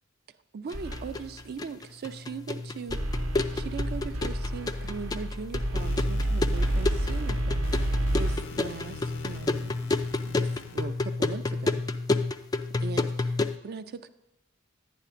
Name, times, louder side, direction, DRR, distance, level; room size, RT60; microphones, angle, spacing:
voice 1, 0.5-3.0 3.5-9.7 10.3-11.8 12.8-14.1, right 5 dB, 50° right, 10 dB, 0.4 m, -40 dB
sound 1, 0.7-13.6, left 3 dB, 20° left, 0.3 m, -31 dB
sound 2, 0.7-1.5 2.9-8.4, right 1 dB, 75° right, 0.8 m, -29 dB
sound 3, 5.8-11.2, left 4 dB, 65° left, 0.6 m, -44 dB
10.5 x 10.0 x 2.5 m, 0.94 s
head